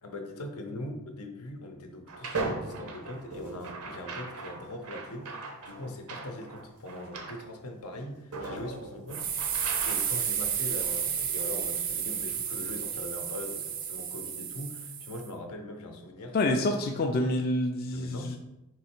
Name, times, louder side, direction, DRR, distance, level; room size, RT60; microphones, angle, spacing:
voice 1, 0.0-9.3 9.8-16.4 17.9-18.4, left 1 dB, 90° left, 4 dB, 0.8 m, -41 dB
sound 1, 2.1-7.5 8.0-8.1 8.3-10.0, right 3 dB, 90° right, 0.8 m, -38 dB
sound 2, 9.1-15.3, right 8 dB, 40° right, 0.4 m, -32 dB
voice 2, 16.3-18.4, left 2 dB, 45° left, 3 dB, 0.3 m, -27 dB
3.7 x 3.2 x 4.4 m, 0.94 s
head